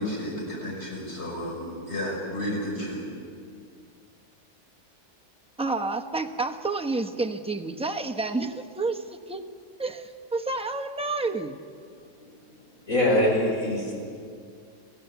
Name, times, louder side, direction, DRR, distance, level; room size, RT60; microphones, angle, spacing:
voice 1, 0.0-3.1, left 1 dB, 40° left, -2 dB, 6.2 m, -32 dB
voice 2, 5.6-9.4 9.8-11.6, right 3 dB, 5° right, 3 dB, 0.7 m, -29 dB
voice 3, 12.9-14.1, left 1 dB, 55° left, -2 dB, 6.1 m, -23 dB
28.0 x 16.5 x 8.2 m, 2.3 s
omnidirectional pair, 1.7 m